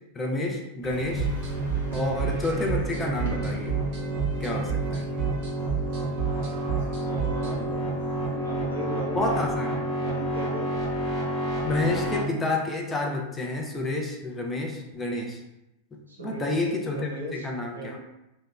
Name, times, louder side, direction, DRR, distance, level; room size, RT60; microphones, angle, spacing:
voice 1, 0.1-1.3 1.9-3.7 4.4-5.0 9.2-9.7 11.6-15.4 16.2-18.0, left 2 dB, 15° left, 0 dB, 0.5 m, -29 dB
sound 1, 0.8-8.3, right 1 dB, 65° left, 0.6 m, -42 dB
sound 2, 1.1-12.2, right 1 dB, 15° right, 0.8 m, -30 dB
sound 3, 1.2-7.6, right 7 dB, 45° right, 0.7 m, -31 dB
voice 2, 6.9-10.7 16.1-16.6 16.8-18.0, right 1 dB, 75° right, -3 dB, 0.6 m, -38 dB
2.8 x 2.1 x 2.3 m, 0.90 s
figure-of-eight pair, 90°, 0 cm